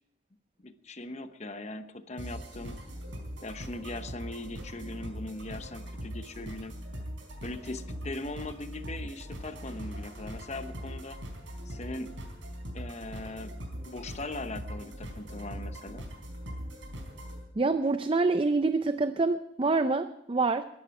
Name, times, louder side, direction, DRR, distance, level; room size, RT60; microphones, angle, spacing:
voice 1, 0.6-2.8 3.4-6.7 7.4-11.2 11.6-12.2 12.7-13.5 13.9-16.1, left 2 dB, 35° left, 10 dB, 0.9 m, -40 dB
sound 1, 2.2-17.4, equal, 80° right, 4.2 m, -41 dB
voice 2, 17.6-20.6, right 3 dB, 25° right, 11 dB, 0.4 m, -26 dB
21.0 x 11.0 x 4.8 m, 0.91 s
head